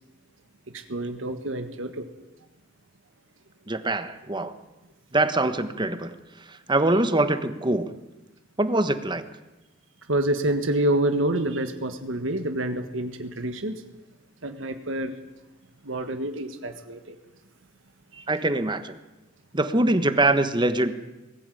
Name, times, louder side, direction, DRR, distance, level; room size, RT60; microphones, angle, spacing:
voice 1, 0.9-2.0 10.1-13.8 14.4-15.1 15.8-17.0 18.1-18.2, right 1 dB, 75° right, 7 dB, 1.6 m, -27 dB
voice 2, 3.7-4.5 5.1-6.1 6.5-7.9 8.6-9.2 18.3-19.0 19.5-20.9, right 2 dB, 25° right, 10 dB, 1.3 m, -23 dB
21.5 x 15.0 x 9.3 m, 1.1 s
head